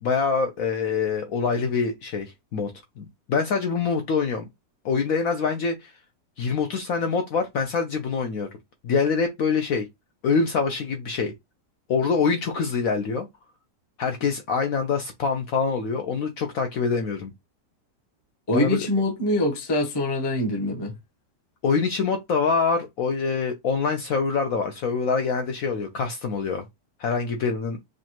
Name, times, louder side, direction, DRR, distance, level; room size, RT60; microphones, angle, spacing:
voice 1, 0.0-2.7 3.0-4.4 4.8-5.9 6.4-8.5 8.8-9.9 10.2-11.3 11.9-13.3 14.0-17.3 18.5-18.8 21.6-26.6 27.0-27.8, left 5 dB, 65° left, 0.9 m, -25 dB
voice 2, 18.5-20.9, left 1 dB, 25° left, 0.6 m, -24 dB
5.0 x 2.3 x 2.9 m
omnidirectional pair, 1.9 m